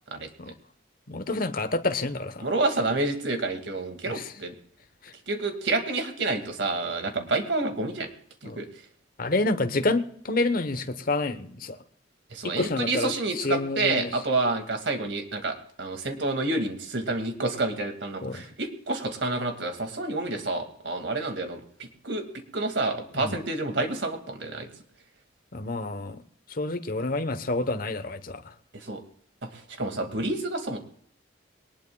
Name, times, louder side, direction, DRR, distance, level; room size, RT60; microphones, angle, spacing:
voice 1, 1.1-2.4 4.1-4.3 5.0-5.1 8.4-8.6 9.2-11.8 12.4-14.1 18.2-18.4 23.1-23.3 25.5-26.2 26.5-28.5, left 2 dB, 50° left, 10 dB, 1.1 m, -28 dB
voice 2, 2.4-4.5 5.3-8.1 8.4-8.7 12.3-21.6 22.0-22.2 22.5-24.7 28.7-29.0 29.5-30.8, right 2 dB, 70° right, 6 dB, 2.2 m, -29 dB
21.5 x 19.5 x 2.3 m, 0.62 s
head